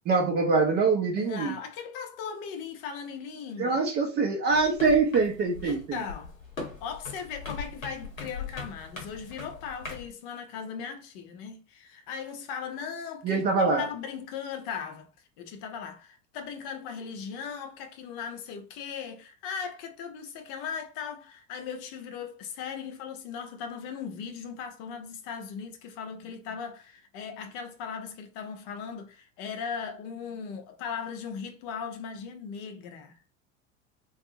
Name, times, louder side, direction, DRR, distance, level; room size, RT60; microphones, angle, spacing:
voice 1, 0.1-1.6 3.6-6.0 13.2-13.9, right 4 dB, 25° right, 0.6 m, -24 dB
voice 2, 1.2-3.8 5.6-6.4 6.8-15.1 15.4-33.1, left 6 dB, 45° left, 0.7 m, -38 dB
sound 1, 4.5-10.1, left 4 dB, 80° left, 0.9 m, -40 dB
2.6 x 2.3 x 2.6 m
figure-of-eight pair, 75°, 39 cm